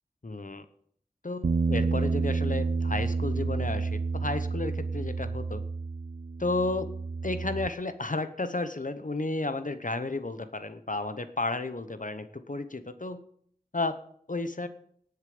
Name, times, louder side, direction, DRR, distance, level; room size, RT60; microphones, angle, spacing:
voice 1, 0.2-0.6 1.2-5.6 6.4-6.9 7.2-13.2 13.7-14.0 14.3-14.7, left 2 dB, 50° left, 10 dB, 0.9 m, -32 dB
Bass guitar, 1.4-7.7, right 4 dB, 55° right, 0.5 m, -30 dB
18.5 x 6.8 x 5.1 m, 0.65 s
wide cardioid pair, 40°, 17 cm